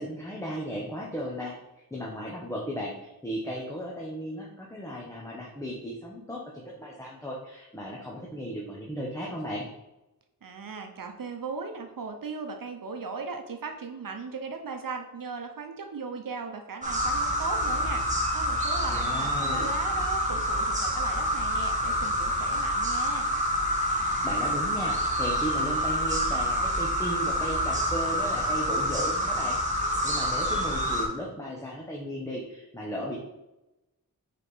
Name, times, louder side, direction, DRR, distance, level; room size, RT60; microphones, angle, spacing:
voice 1, 0.0-9.7 18.9-19.7 24.0-33.2, equal, 10° left, -3 dB, 1.0 m, -36 dB
voice 2, 10.4-18.0 18.3-23.3, right 4 dB, 65° right, 4 dB, 0.9 m, -37 dB
sound 1, 16.8-31.1, equal, 20° right, 1.7 m, -27 dB
4.9 x 4.3 x 4.9 m, 0.96 s
wide cardioid pair, 90°, 36 cm